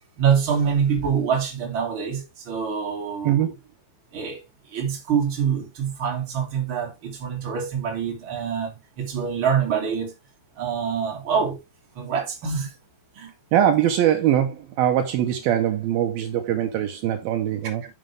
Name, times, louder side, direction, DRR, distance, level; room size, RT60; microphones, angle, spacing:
voice 1, 0.2-3.5 4.1-4.4 4.7-10.1 10.6-11.6 11.9-12.7 13.2-13.3, right 7 dB, 35° right, 2.2 m, -25 dB
voice 2, 13.5-17.9, right 10 dB, 85° right, 2.1 m, -22 dB
9.1 x 6.8 x 3.3 m
omnidirectional pair, 5.6 m